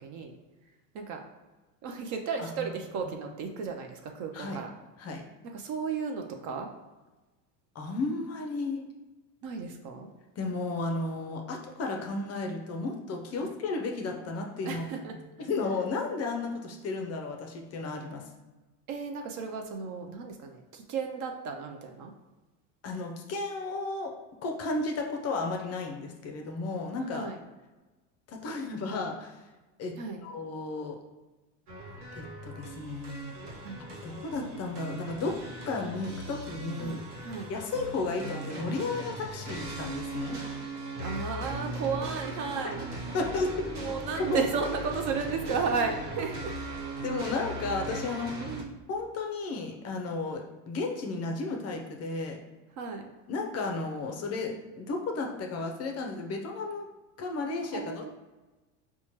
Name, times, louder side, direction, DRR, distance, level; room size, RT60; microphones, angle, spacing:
voice 1, 0.0-0.3 0.9-1.2 1.8-4.7 5.5-6.7 9.4-10.1 13.4-13.5 14.6-15.1 18.9-22.1 27.1-27.4 30.0-30.2 33.6-33.8 36.8-37.5 41.0-42.8 43.8-46.5 48.4-48.7 52.8-53.1 57.7-58.1, right 5 dB, 40° right, 4 dB, 0.4 m, -34 dB
voice 2, 7.8-8.9 10.4-15.1 15.4-18.2 22.8-24.1 24.4-27.3 28.3-29.4 29.8-31.0 32.1-33.2 34.0-35.3 35.7-37.0 37.5-40.4 43.1-43.7 44.2-44.4 47.0-48.3 48.9-52.4 53.3-56.9 57.2-58.1, left 3 dB, 35° left, 2 dB, 0.5 m, -33 dB
sound 1, 31.7-48.6, right 2 dB, 75° right, 1.1 m, -39 dB
4.2 x 2.2 x 2.9 m, 1.2 s
supercardioid pair, 100°, 47 cm